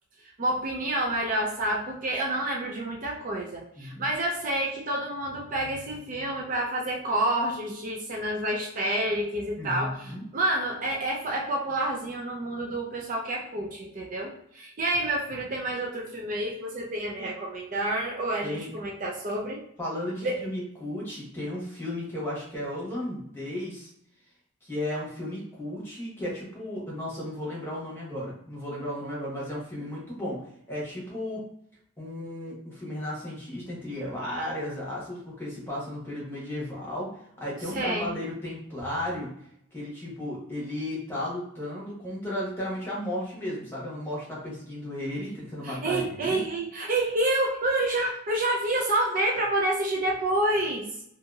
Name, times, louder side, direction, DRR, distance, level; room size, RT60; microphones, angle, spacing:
voice 1, 0.4-19.6 20.2-20.4 37.7-38.2 45.6-50.9, right 1 dB, 40° right, -1 dB, 0.4 m, -28 dB
voice 2, 9.6-10.2 18.4-18.7 19.8-23.9 24.6-30.4 30.7-31.4 32.0-39.3 39.7-46.4, left 1 dB, 10° left, -6 dB, 1.1 m, -34 dB
2.8 x 2.7 x 2.3 m, 0.74 s
head